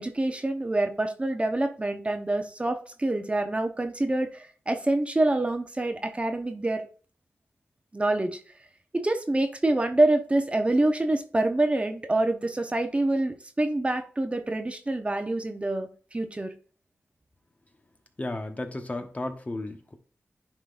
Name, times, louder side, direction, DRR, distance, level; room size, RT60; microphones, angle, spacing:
voice 1, 0.0-6.9 7.9-8.4 8.9-16.5, right 2 dB, 25° right, 0.8 m, -26 dB
voice 2, 18.2-19.9, left 2 dB, 30° left, 1.0 m, -34 dB
10.0 x 3.8 x 2.5 m
cardioid pair, 70°, 5 cm